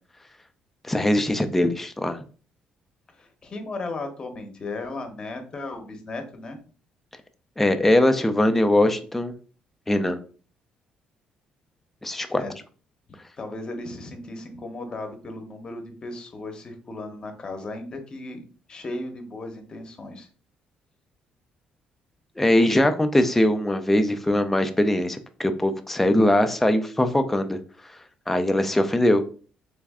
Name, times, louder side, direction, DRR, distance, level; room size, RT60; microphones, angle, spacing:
voice 1, 0.9-2.2 7.6-9.3 9.9-10.2 12.0-12.4 22.4-27.6 28.3-29.2, left 1 dB, 10° left, 8 dB, 0.4 m, -21 dB
voice 2, 3.1-6.6 12.3-12.5 13.4-20.3, left 2 dB, 30° left, 6 dB, 0.9 m, -36 dB
3.4 x 3.1 x 3.6 m, 0.40 s
cardioid pair, 120°, 3 cm